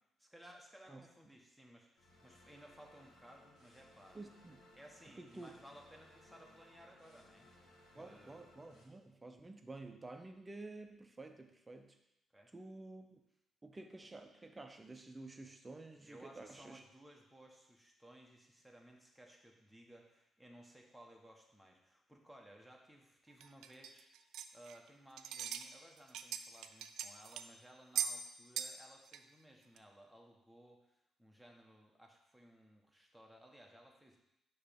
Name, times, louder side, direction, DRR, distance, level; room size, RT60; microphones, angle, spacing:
voice 1, 0.2-4.2 4.7-8.5 12.3-12.5 16.0-34.2, equal, ahead, 0 dB, 1.1 m, -60 dB
sound 1, 2.0-8.8, left 1 dB, 85° left, 1.5 m, -64 dB
voice 2, 4.1-4.6 5.2-5.5 8.0-12.0 12.5-13.2 13.6-16.8, right 2 dB, 20° right, 6 dB, 0.6 m, -51 dB
sound 2, 23.4-24.9 25.2-25.7 26.0-27.5 27.9-28.2 28.6-28.8 29.1-29.2 29.8-29.9, right 8 dB, 80° right, 0.3 m, -40 dB
6.5 x 3.1 x 5.2 m, 0.87 s
cardioid pair, 90°, 0 cm